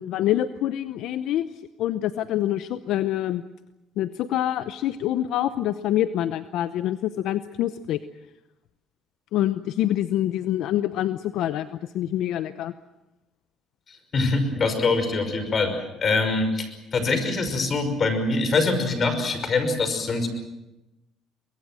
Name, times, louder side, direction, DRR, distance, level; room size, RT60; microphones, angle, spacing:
voice 1, 0.0-1.5 1.8-3.4 4.0-8.0 9.3-12.7, left 12 dB, 75° left, 13 dB, 0.8 m, -26 dB
voice 2, 14.1-20.3, left 3 dB, 40° left, 9 dB, 5.7 m, -24 dB
24.0 x 21.5 x 7.7 m, 0.96 s
cardioid pair, 90°, 0 cm